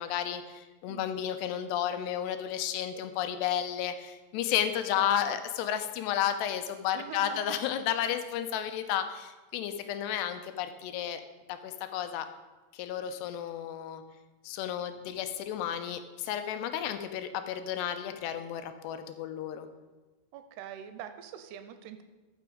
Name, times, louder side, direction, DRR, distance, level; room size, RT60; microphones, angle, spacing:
voice 1, 0.0-11.2 11.5-12.3 12.7-14.0 14.4-19.7, left 10 dB, 80° left, 9 dB, 2.7 m, -32 dB
voice 2, 4.9-5.4 6.9-7.6 20.3-22.0, right 9 dB, 85° right, 9 dB, 2.6 m, -44 dB
14.0 x 6.1 x 5.0 m, 1.2 s
omnidirectional pair, 4.9 m